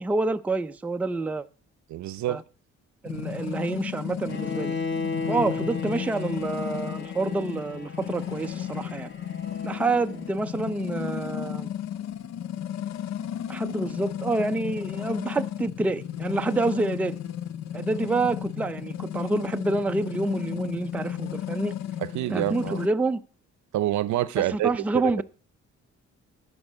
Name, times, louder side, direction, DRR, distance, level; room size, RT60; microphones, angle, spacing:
voice 1, 0.0-1.4 2.3-2.4 3.0-4.8 5.3-9.1 9.6-11.7 13.5-17.2 17.7-21.7 22.3-23.2 24.4-25.2, right 3 dB, 5° right, 0.4 m, -28 dB
voice 2, 1.9-2.4 22.0-22.8 23.7-25.2, right 14 dB, 70° right, 0.6 m, -27 dB
sound 1, 3.0-22.9, left 10 dB, 60° left, 0.6 m, -34 dB
Bowed string instrument, 4.3-10.3, left 4 dB, 35° left, 1.5 m, -34 dB
11.5 x 4.4 x 7.2 m
cardioid pair, 90°, 30 cm